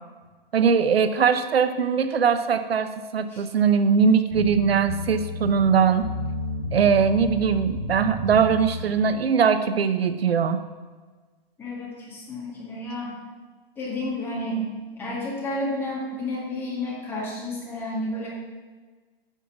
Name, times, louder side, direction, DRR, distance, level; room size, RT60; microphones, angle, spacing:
voice 1, 0.5-6.1 6.7-10.6, right 6 dB, 85° right, 11 dB, 0.9 m, -21 dB
sound 1, 4.3-8.9, left 2 dB, 55° left, 2.8 m, -32 dB
voice 2, 11.6-13.2 13.8-14.7 14.9-18.3, left 1 dB, 5° left, -5 dB, 1.9 m, -31 dB
10.0 x 5.6 x 7.1 m, 1.4 s
hypercardioid pair, 165°, 30 cm